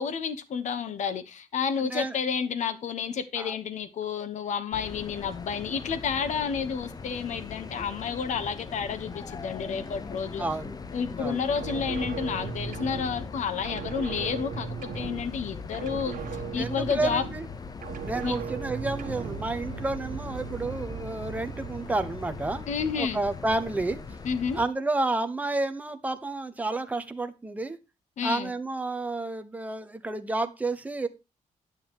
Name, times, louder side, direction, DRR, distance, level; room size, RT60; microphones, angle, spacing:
voice 1, 0.0-10.4 10.9-14.7 14.9-17.2 18.2-18.3 22.7-23.2 24.2-24.6 28.2-28.5, left 6 dB, 60° left, 1.1 m, -30 dB
voice 2, 1.8-2.1 3.4-3.5 10.4-10.7 11.2-11.4 16.6-17.4 18.0-22.6 22.9-24.0 24.5-27.8 28.2-31.1, right 2 dB, 10° right, 1.1 m, -30 dB
sound 1, 4.7-24.7, left 5 dB, 30° left, 0.8 m, -40 dB
sound 2, 11.5-13.4 13.6-15.5 15.7-17.6 17.8-19.5, right 7 dB, 90° right, 1.4 m, -37 dB
sound 3, 18.2-23.4, right 10 dB, 60° right, 0.5 m, -42 dB
11.0 x 9.4 x 3.0 m
wide cardioid pair, 160°, 14 cm